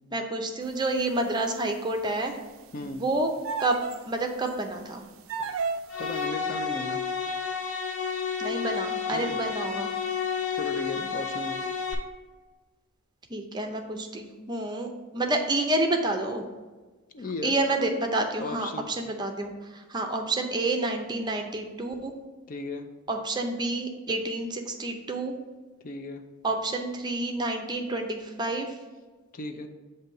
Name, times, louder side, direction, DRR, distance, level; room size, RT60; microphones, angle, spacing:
voice 1, 0.1-2.4 2.8-3.3 3.6-3.8 4.1-5.0 8.4-9.9 13.3-16.4 17.4-22.1 23.1-25.4 26.4-28.7, right 2 dB, 20° right, 4 dB, 0.5 m, -29 dB
sound 1, 1.0-1.4 3.4-4.0 4.5-4.6 5.3-6.0, right 5 dB, 70° right, 0.4 m, -32 dB
sound 2, 5.9-11.9, left 6 dB, 85° left, 0.9 m, -31 dB
voice 2, 6.0-7.0 9.1-9.4 10.5-11.6 17.1-17.6 18.4-18.9 22.5-22.9 25.8-26.2 29.3-29.7, left 2 dB, 40° left, 6 dB, 0.4 m, -36 dB
7.8 x 2.7 x 5.3 m, 1.3 s
head